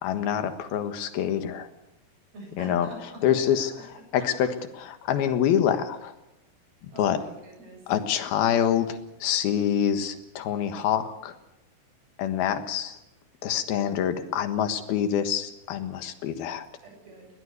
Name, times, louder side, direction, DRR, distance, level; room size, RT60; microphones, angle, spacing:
voice 1, 0.0-1.7 2.6-2.9 3.2-3.7 4.1-4.5 4.8-6.1 6.8-7.2 7.9-11.4 12.2-13.0 13.4-16.7, left 9 dB, 85° left, 9 dB, 3.4 m, -26 dB
voice 2, 2.3-3.8 6.9-7.8 16.8-17.3, right 2 dB, 90° right, 2 dB, 9.8 m, -45 dB
21.5 x 18.5 x 8.3 m, 0.92 s
omnidirectional pair, 4.2 m